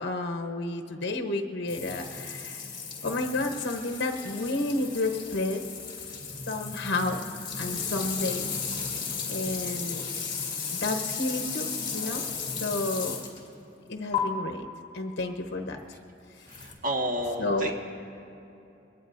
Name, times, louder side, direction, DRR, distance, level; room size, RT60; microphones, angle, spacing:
voice 1, 0.0-2.6 3.0-5.6 6.5-7.2 7.6-8.4 9.3-10.0 10.7-12.2 12.6-13.2 13.9-14.7 14.9-15.8 17.4-17.7, left 2 dB, 60° left, 3 dB, 1.0 m, -31 dB
sound 1, 1.7-13.5 14.1-14.2 16.5-16.7, left 6 dB, 25° left, 2.4 m, -35 dB
voice 2, 16.5-17.7, equal, 45° right, 0 dB, 1.6 m, -31 dB
22.0 x 18.0 x 2.6 m, 2.9 s
head